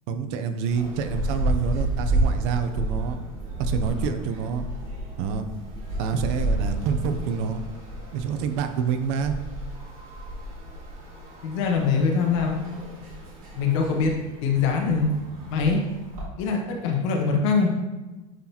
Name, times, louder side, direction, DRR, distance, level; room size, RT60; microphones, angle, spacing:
voice 1, 0.1-3.2 3.6-4.6 5.2-5.5 6.0-7.6 8.1-9.4, right 6 dB, 55° right, 8 dB, 0.7 m, -27 dB
sound 1, 0.7-16.2, right 1 dB, 40° right, 2.2 m, -31 dB
voice 2, 11.4-12.6 13.5-14.1 14.4-15.1 15.5-15.8 16.4-17.7, left 5 dB, 65° left, 1 dB, 1.4 m, -23 dB
10.0 x 4.0 x 2.9 m, 1.1 s
supercardioid pair, 150°, 17 cm